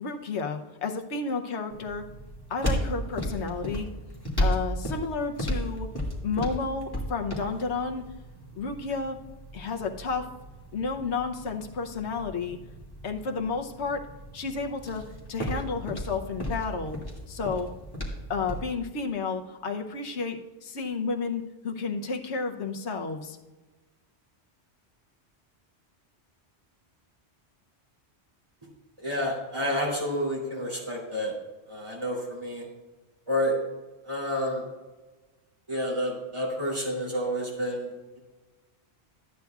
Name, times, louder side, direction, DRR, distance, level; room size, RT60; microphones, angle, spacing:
voice 1, 0.0-2.1 2.5-3.9 4.4-5.9 6.2-8.0 8.5-9.2 9.5-10.3 10.7-12.6 13.0-14.1 14.3-17.0 17.3-17.7 18.3-23.4, left 4 dB, 75° left, 4 dB, 1.1 m, -31 dB
sound 1, 1.7-18.7, equal, 20° left, 2.0 m, -35 dB
voice 2, 29.0-31.3 31.7-32.6 33.3-33.6 34.0-34.6 35.7-37.9, equal, 25° right, -4 dB, 3.2 m, -29 dB
13.5 x 9.1 x 2.4 m, 1.2 s
omnidirectional pair, 1.2 m